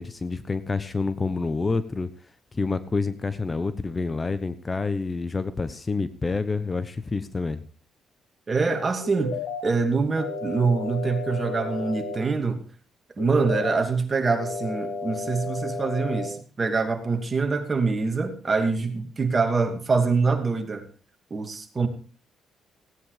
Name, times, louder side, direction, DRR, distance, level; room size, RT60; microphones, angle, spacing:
voice 1, 0.0-2.1 2.5-7.6, left 3 dB, 25° left, 13 dB, 1.0 m, -28 dB
voice 2, 8.5-12.6 13.2-20.8 21.3-21.9, right 4 dB, 30° right, 6 dB, 2.6 m, -25 dB
sound 1, 9.0-9.6 10.2-12.2 13.2-13.8 14.3-16.3, left 3 dB, 65° left, 7.7 m, -32 dB
16.5 x 9.6 x 5.0 m, 0.38 s
cardioid pair, 90°, 0 cm